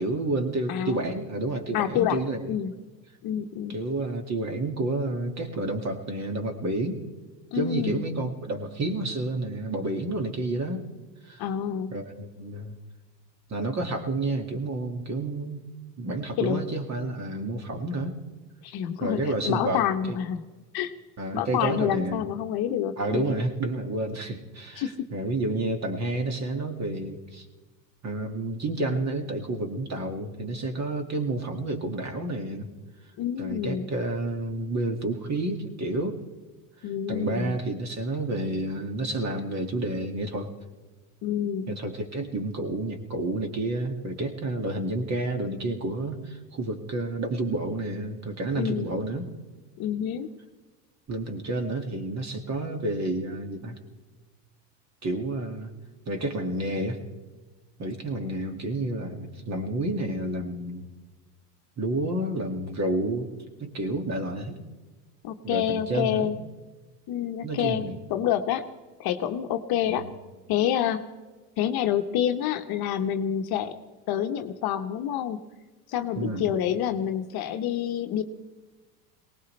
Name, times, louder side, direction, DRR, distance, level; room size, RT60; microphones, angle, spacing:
voice 1, 0.0-2.4 3.7-7.0 7.5-10.8 11.3-11.4 11.9-12.8 13.5-15.6 16.0-18.2 19.0-20.2 21.2-22.3 23.0-27.5 28.0-32.7 33.4-36.2 36.8-40.5 41.7-49.3 51.1-53.8 55.0-55.7 56.1-57.0 57.8-60.9 61.8-63.3 63.6-64.6 65.4-66.4 67.4-68.0 69.9-70.1 76.2-76.5, right 2 dB, 35° right, 5 dB, 2.1 m, -30 dB
voice 2, 0.7-1.1 1.7-2.2 2.5-2.7 3.2-3.8 7.5-8.0 11.4-11.9 16.4-16.6 18.6-20.4 20.7-20.9 21.3-23.3 24.8-25.1 33.2-33.9 36.8-37.5 41.2-41.7 48.6-48.9 49.8-50.3 65.2-66.4 67.1-68.7 69.0-70.1 70.5-71.1 71.6-73.8 74.1-75.4 75.9-78.2, left 9 dB, 50° left, 6 dB, 1.1 m, -28 dB
22.5 x 18.5 x 3.3 m, 1.3 s
hypercardioid pair, 90°, 49 cm